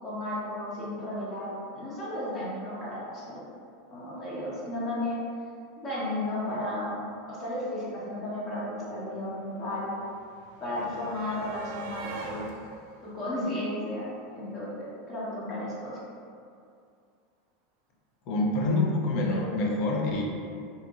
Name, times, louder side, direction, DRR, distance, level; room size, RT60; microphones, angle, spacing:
voice 1, 0.0-3.4 3.9-5.2 5.8-7.0 7.3-9.9 10.6-12.4 13.0-16.0, left 1 dB, 35° left, -8 dB, 1.0 m, -34 dB
sound 1, 8.2-14.4 15.6-15.7 16.0-16.1, right 3 dB, 70° right, 0.3 m, -45 dB
voice 2, 18.3-20.2, left 2 dB, 55° left, -1 dB, 0.5 m, -26 dB
2.8 x 2.5 x 2.4 m, 2.4 s
supercardioid pair, 120°, 0 cm